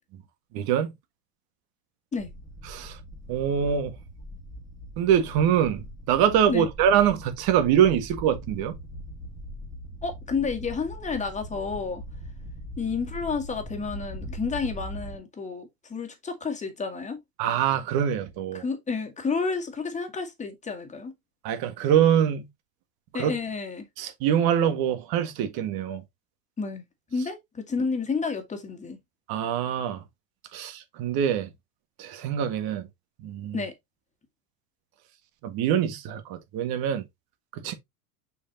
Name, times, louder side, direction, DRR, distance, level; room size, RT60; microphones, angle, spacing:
voice 1, 0.5-0.9 2.7-3.0 3.3-3.9 5.0-8.8 17.4-18.6 21.4-22.5 23.1-23.4 24.0-26.0 29.3-30.0 30.5-31.5 32.0-32.9 33.2-33.6 35.4-37.0 37.5-37.7, right 9 dB, 50° right, 1.9 m, -24 dB
sound 1, 2.2-15.2, equal, 10° right, 2.4 m, -41 dB
voice 2, 10.0-12.0 12.8-17.2 18.5-21.1 23.1-23.9 26.6-26.8 27.1-29.0 33.5-33.7, left 4 dB, 15° left, 1.9 m, -30 dB
6.5 x 5.8 x 2.9 m
supercardioid pair, 130°, 46 cm